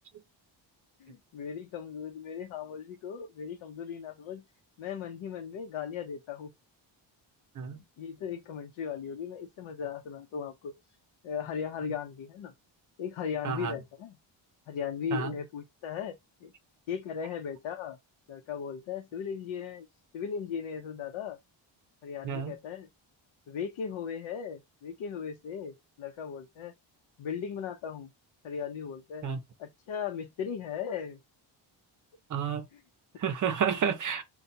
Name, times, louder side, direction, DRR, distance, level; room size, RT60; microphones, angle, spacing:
voice 1, 1.0-4.4 4.8-6.5 7.6-10.7 11.2-12.5 13.0-14.2 14.7-16.5 16.9-18.0 18.3-19.9 20.1-21.4 22.0-22.9 23.5-26.7 27.2-28.1 28.4-29.3 29.6-31.2 32.7-32.8, left 7 dB, 85° left, 0.8 m, -37 dB
voice 2, 32.3-32.6 33.2-34.2, right 7 dB, 40° right, 0.7 m, -30 dB
5.6 x 2.3 x 2.7 m
wide cardioid pair, 170°, 47 cm